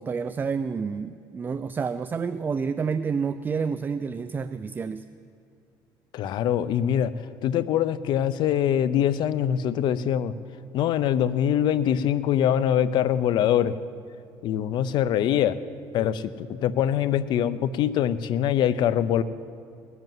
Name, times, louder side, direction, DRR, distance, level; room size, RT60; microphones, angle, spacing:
voice 1, 0.0-5.1, right 5 dB, 20° right, 12 dB, 0.4 m, -29 dB
voice 2, 6.1-7.1 7.4-10.3 10.7-13.8 14.4-15.6 15.9-19.2, left 10 dB, 60° left, 15 dB, 0.6 m, -23 dB
19.5 x 8.1 x 9.2 m, 2.4 s
cardioid pair, 130°, 9 cm